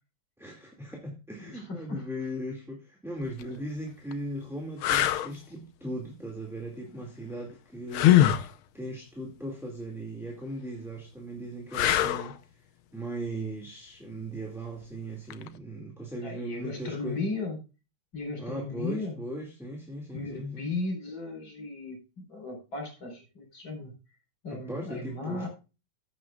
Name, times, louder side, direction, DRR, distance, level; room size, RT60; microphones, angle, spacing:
voice 1, 0.4-8.4 8.7-12.7 12.9-17.2 18.4-20.7 24.5-25.5, right 1 dB, ahead, 0 dB, 1.9 m, -38 dB
voice 2, 1.4-2.0 3.4-3.6 16.2-17.6 18.1-19.2 20.1-23.9 24.4-25.5, left 3 dB, 70° left, 3 dB, 5.2 m, -36 dB
sound 1, 3.2-3.4 4.1-4.2 4.8-5.3 7.9-8.5 11.7-12.3 15.3-15.5, left 12 dB, 85° left, 1.7 m, -22 dB
15.0 x 8.3 x 2.4 m, 0.30 s
omnidirectional pair, 2.3 m